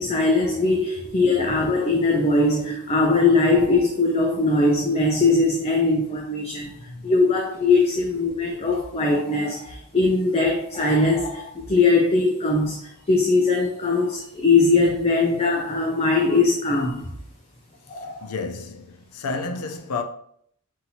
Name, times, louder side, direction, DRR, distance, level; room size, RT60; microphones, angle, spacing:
voice 1, 0.0-17.1 17.9-18.3, left 3 dB, 30° left, 0.5 m, -21 dB
voice 2, 6.6-7.1 18.0-20.0, left 4 dB, 80° left, 0.6 m, -32 dB
5.6 x 2.8 x 2.7 m
head